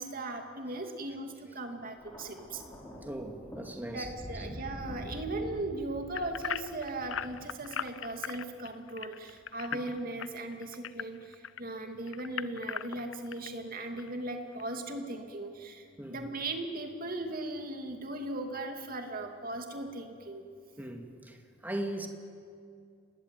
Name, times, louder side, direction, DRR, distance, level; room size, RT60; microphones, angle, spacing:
voice 1, 0.0-2.6 3.9-11.2 11.6-15.8 16.1-20.4, right 2 dB, 45° right, 4 dB, 2.7 m, -38 dB
Thunder, 2.0-8.3 9.3-9.6, equal, 15° left, 4.3 m, -46 dB
voice 2, 3.0-4.1 16.0-16.2 20.8-21.4 21.6-22.1, right 1 dB, 10° right, 4 dB, 2.1 m, -38 dB
sound 1, 6.1-11.6 12.1-13.5 14.0-14.1 14.6-14.7, left 8 dB, 70° left, 0.6 m, -38 dB
29.5 x 20.0 x 9.3 m, 2.4 s
head